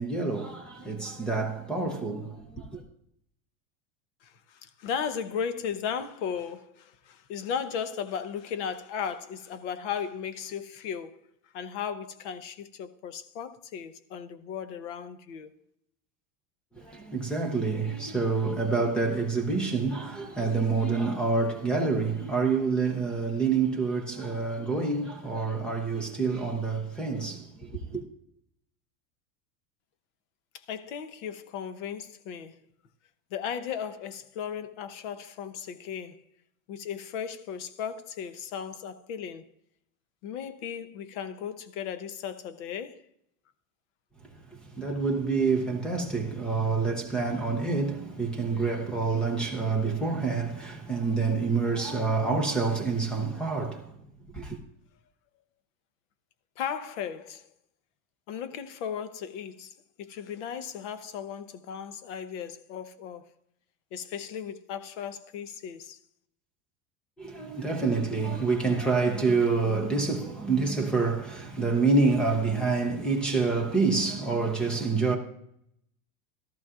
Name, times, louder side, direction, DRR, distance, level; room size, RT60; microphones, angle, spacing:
voice 1, 0.0-2.8 16.8-28.0 44.7-53.9 54.3-54.6 67.2-75.2, right 4 dB, ahead, 0.4 m, -27 dB
voice 2, 4.2-11.2 11.5-15.5 30.5-32.6 33.3-36.2 36.7-39.5 40.2-43.0 56.6-57.5 58.3-63.3 63.9-66.0, left 7 dB, 60° left, 0.9 m, -36 dB
15.0 x 13.5 x 2.4 m
supercardioid pair, 180°, 40 cm